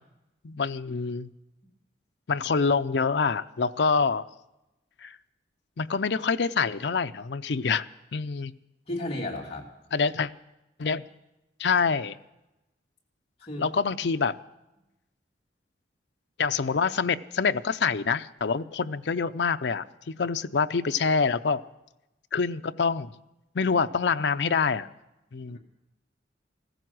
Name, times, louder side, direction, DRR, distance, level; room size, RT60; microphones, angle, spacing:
voice 1, 0.4-1.3 2.3-4.2 5.0-5.2 5.8-7.9 8.1-8.5 9.9-10.3 10.8-11.0 11.6-12.2 13.6-14.4 16.4-21.6 22.3-23.1 23.5-24.9 25.3-25.6, left 5 dB, 65° left, 10 dB, 0.5 m, -26 dB
voice 2, 8.9-9.7 13.4-13.7 25.5-25.6, left 1 dB, 35° left, -2 dB, 2.9 m, -34 dB
15.5 x 14.0 x 6.1 m, 0.95 s
head